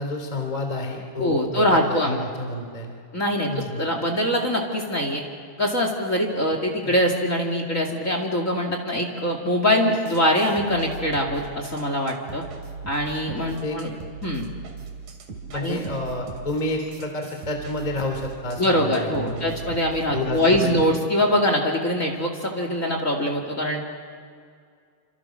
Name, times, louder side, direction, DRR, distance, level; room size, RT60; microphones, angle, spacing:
voice 1, 0.0-2.9 3.5-3.9 6.8-6.9 13.4-13.8 15.5-19.6 20.1-20.9, left 2 dB, 15° left, 3 dB, 2.0 m, -30 dB
voice 2, 1.2-2.2 3.1-5.2 5.6-12.4 12.8-13.9 14.2-14.5 15.5-15.8 18.6-23.8, equal, 30° left, 2 dB, 1.4 m, -23 dB
sound 1, 9.9-20.4, right 5 dB, 50° right, 3.8 m, -40 dB
28.0 x 27.0 x 6.4 m, 2.2 s
omnidirectional pair, 5.2 m